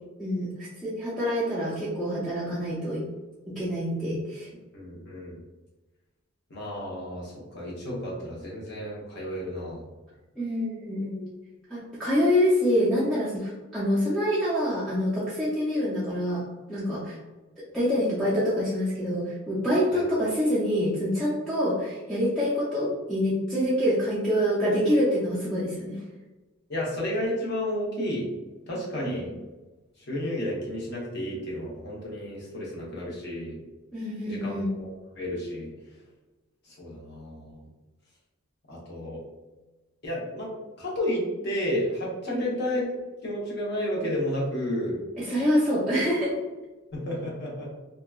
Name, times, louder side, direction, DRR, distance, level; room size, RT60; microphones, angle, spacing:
voice 1, 0.2-3.0 3.6-4.5 10.4-11.3 11.7-16.4 16.7-17.2 17.7-26.0 29.0-29.3 33.9-34.7 42.3-42.6 45.2-46.4, equal, ahead, -10 dB, 0.4 m, -26 dB
voice 2, 4.7-5.4 6.5-9.8 19.9-20.0 26.7-28.3 28.7-29.3 30.1-33.6 34.3-35.7 36.8-37.7 38.7-39.2 40.0-40.5 40.8-42.8 43.2-45.0 46.9-47.7, left 1 dB, 50° left, -4 dB, 0.8 m, -32 dB
2.8 x 2.2 x 2.2 m, 1.2 s
head